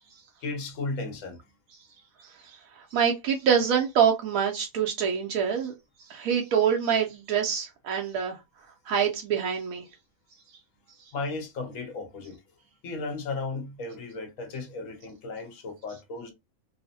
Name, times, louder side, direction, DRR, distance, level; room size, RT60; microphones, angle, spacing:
voice 1, 0.4-1.4 11.1-12.4 12.8-16.3, left 3 dB, 75° left, 1.2 m, -35 dB
voice 2, 2.8-5.7 6.1-8.4 8.9-9.8, right 7 dB, 85° right, 1.0 m, -25 dB
2.9 x 2.0 x 2.6 m
omnidirectional pair, 1.4 m